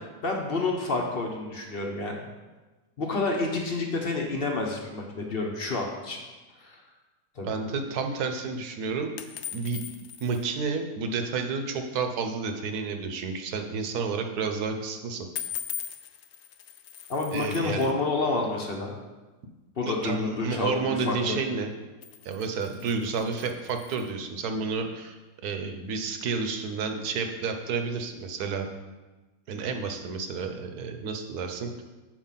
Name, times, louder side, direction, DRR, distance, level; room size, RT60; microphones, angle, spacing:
voice 1, 0.0-2.3 3.0-6.2 6.6-6.8 7.4-7.6 17.1-18.9 19.8-21.4, left 3 dB, 40° left, 1 dB, 0.9 m, -29 dB
voice 2, 7.4-9.1 9.5-9.8 10.2-15.3 17.3-17.9 19.8-21.7 22.2-28.7 29.5-31.8, right 4 dB, 70° right, 5 dB, 1.3 m, -31 dB
sound 1, 9.2-10.4 15.4-17.9 21.8-24.2, left 9 dB, 85° left, 0.6 m, -40 dB
7.4 x 4.7 x 5.6 m, 1.2 s
omnidirectional pair, 1.8 m